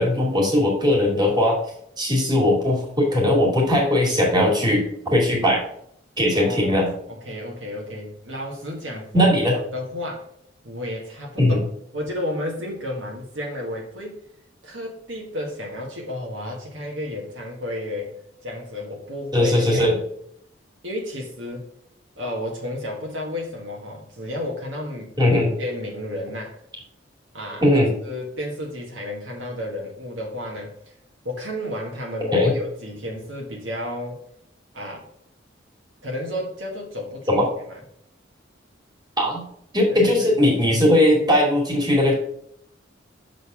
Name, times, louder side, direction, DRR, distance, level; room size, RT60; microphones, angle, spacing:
voice 1, 0.0-1.6 2.0-5.6 6.2-6.9 9.1-9.6 11.4-11.6 19.3-20.0 25.2-25.6 27.6-27.9 32.3-32.5 37.3-37.5 39.2-39.5 39.7-42.2, left 1 dB, 20° right, -2 dB, 2.2 m, -19 dB
voice 2, 6.3-10.3 10.6-11.7 11.9-14.2 14.6-18.1 18.4-19.9 20.8-21.7 22.2-25.1 25.6-26.6 27.3-27.7 28.0-30.7 31.2-34.2 34.7-35.0 36.0-37.8 39.9-40.1, left 1 dB, 70° right, -1 dB, 1.5 m, -32 dB
6.6 x 4.0 x 4.9 m, 0.70 s
head